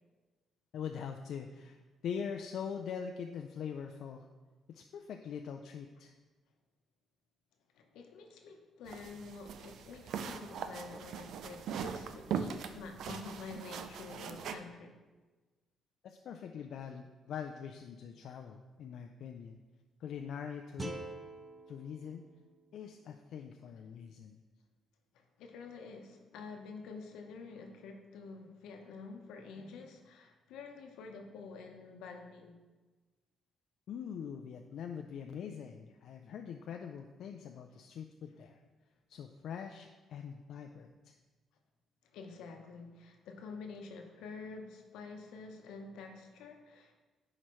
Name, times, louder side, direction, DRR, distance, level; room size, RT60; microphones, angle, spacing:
voice 1, 0.7-4.3 4.7-6.1 16.0-19.6 20.0-21.0 21.7-22.2 22.7-24.4 33.9-38.6 39.1-41.2, left 7 dB, 70° left, 4 dB, 0.4 m, -43 dB
voice 2, 7.7-15.0 25.1-32.6 42.1-46.9, left 4 dB, 90° left, 4 dB, 0.9 m, -48 dB
sound 1, 8.9-14.6, right 7 dB, 75° right, 0.4 m, -41 dB
sound 2, 20.8-23.9, right 2 dB, 25° right, 0.6 m, -47 dB
10.0 x 4.9 x 3.1 m, 1.3 s
cardioid pair, 90°, 0 cm